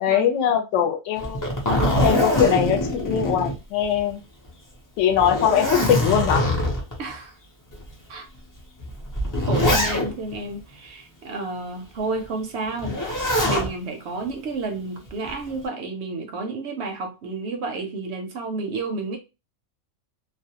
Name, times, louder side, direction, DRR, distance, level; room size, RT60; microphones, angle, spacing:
voice 1, 0.0-4.2 5.0-6.5, left 9 dB, 70° left, 0.8 m, -22 dB
Zipper (clothing), 1.2-4.1 4.5-4.6 5.1-7.0 7.7-7.8 8.8-10.3 12.8-13.7 15.1-15.5, left 1 dB, 30° left, 0.3 m, -23 dB
voice 2, 7.0-7.4 8.1-8.3 9.5-19.2, right 3 dB, 65° right, 0.7 m, -31 dB
2.4 x 2.0 x 2.7 m
omnidirectional pair, 1.4 m